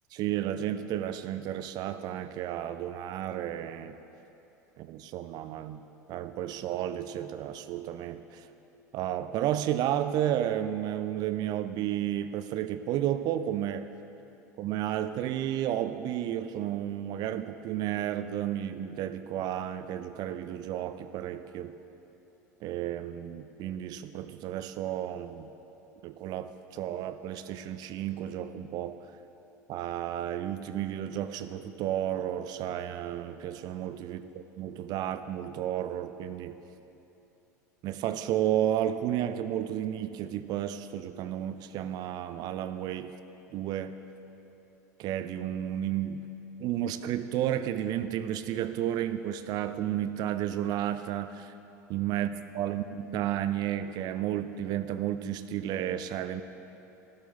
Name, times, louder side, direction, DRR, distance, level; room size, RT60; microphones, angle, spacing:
voice 1, 0.1-3.9 4.8-5.8 6.1-8.5 8.9-13.9 14.6-21.7 22.6-25.5 26.0-29.0 29.7-36.6 37.8-43.1 43.5-44.0 45.0-46.2 46.6-51.5 51.9-52.8 53.1-56.4, right 11 dB, 45° right, 11 dB, 0.4 m, -32 dB
13.0 x 9.0 x 4.0 m, 2.9 s
figure-of-eight pair, 75°, 9 cm